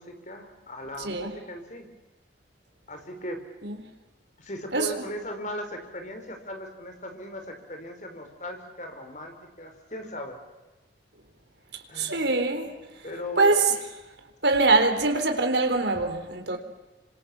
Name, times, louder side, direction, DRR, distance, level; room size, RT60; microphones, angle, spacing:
voice 1, 0.0-1.9 2.9-3.4 4.4-10.4 11.9-12.2 13.0-13.6 16.5-16.6, equal, 45° left, 4.7 m, -38 dB
voice 2, 1.0-1.4 3.6-3.8 4.7-4.9 11.9-12.7 13.4-13.8 14.4-16.6, right 3 dB, 75° right, 3.9 m, -23 dB
28.0 x 25.5 x 7.2 m
head